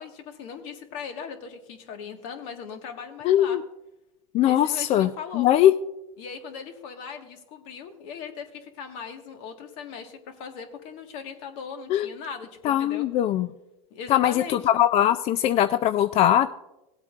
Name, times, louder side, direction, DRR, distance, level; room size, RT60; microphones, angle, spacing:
voice 1, 0.0-3.6 4.4-5.5 6.2-13.1 13.9-14.6, left 6 dB, 60° left, 5 dB, 1.6 m, -39 dB
voice 2, 3.3-3.6 4.3-5.7 11.9-12.1 12.6-13.5 14.1-14.3 14.7-16.5, left 11 dB, 35° left, 12 dB, 0.3 m, -21 dB
18.5 x 8.2 x 2.4 m, 0.96 s
supercardioid pair, 130°, 19 cm